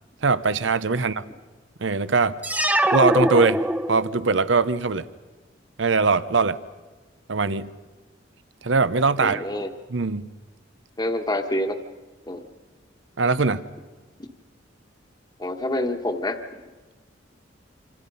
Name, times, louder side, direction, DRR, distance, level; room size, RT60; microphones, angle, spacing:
voice 1, 0.2-1.2 1.8-2.4 2.9-3.6 3.9-5.1 5.8-6.6 7.3-7.7 8.6-9.4 9.9-10.3 13.2-13.6, right 4 dB, 85° right, 14 dB, 0.8 m, -21 dB
sound 1, 2.4-4.3, right 1 dB, 10° right, 0.7 m, -22 dB
voice 2, 9.2-9.7 11.0-11.8 12.3-12.4 15.4-16.4, left 1 dB, 25° left, 4 dB, 1.3 m, -27 dB
27.0 x 27.0 x 5.5 m, 1.3 s
head